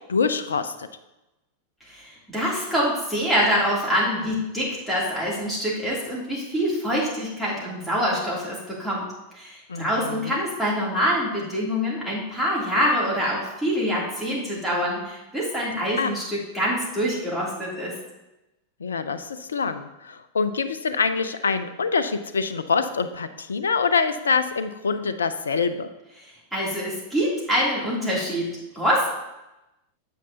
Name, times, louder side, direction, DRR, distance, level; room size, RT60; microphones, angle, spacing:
voice 1, 0.1-0.9 9.7-10.4 16.0-16.1 18.8-25.9, left 5 dB, 70° left, 11 dB, 0.5 m, -25 dB
voice 2, 1.8-9.1 9.3-17.9 26.5-29.1, equal, ahead, -7 dB, 3.2 m, -25 dB
9.2 x 7.8 x 2.9 m, 0.95 s
figure-of-eight pair, 90°, 0 cm